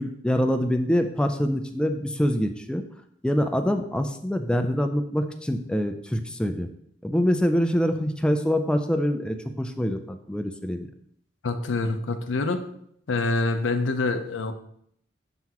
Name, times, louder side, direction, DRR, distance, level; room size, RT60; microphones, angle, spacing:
voice 1, 0.0-2.8 3.2-6.7 7.0-10.9, equal, 5° left, 6 dB, 0.3 m, -25 dB
voice 2, 11.4-12.6 13.1-14.5, left 3 dB, 85° left, 8 dB, 0.6 m, -26 dB
5.9 x 5.7 x 2.9 m, 0.68 s
head